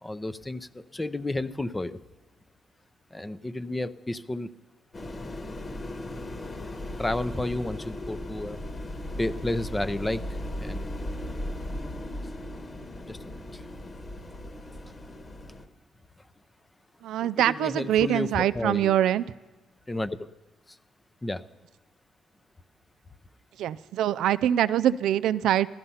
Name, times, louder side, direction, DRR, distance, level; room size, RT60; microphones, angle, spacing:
voice 1, 0.0-2.0 3.1-4.5 6.0-6.1 7.0-8.6 9.2-10.2 10.6-10.9 13.1-13.6 17.2-18.9 19.9-20.2 21.2-21.4, left 2 dB, 15° left, 12 dB, 0.7 m, -32 dB
sound 1, 4.9-15.7, left 1 dB, 35° left, 1.6 m, -37 dB
voice 2, 17.0-19.2 23.6-25.7, right 11 dB, 80° right, 14 dB, 0.4 m, -24 dB
15.0 x 12.0 x 5.6 m, 1.2 s
cardioid pair, 90°, 0 cm